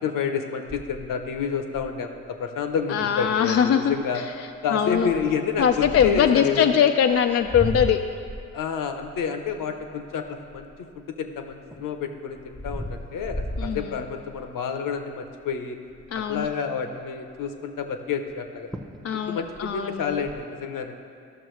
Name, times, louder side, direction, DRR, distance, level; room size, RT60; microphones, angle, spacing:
voice 1, 0.0-4.2 4.6-6.8 8.5-15.8 16.3-18.7 19.1-20.9, left 6 dB, 55° left, 6 dB, 0.9 m, -29 dB
sound 1, 0.7-2.1 2.7-2.8 3.0-3.3 3.8-4.1 4.9-6.4 7.1-11.0 11.5-14.5 15.0-15.2 15.5-15.6 15.9-16.6 18.3-18.4 18.7-19.1 19.4-20.3, left 1 dB, ahead, 0.8 m, -35 dB
voice 2, 2.9-5.1 5.6-8.0 13.6-14.0 16.1-16.5 19.0-20.3, left 8 dB, 40° left, 6 dB, 0.4 m, -22 dB
12.5 x 6.0 x 3.2 m, 2.4 s
hypercardioid pair, 45°, 38 cm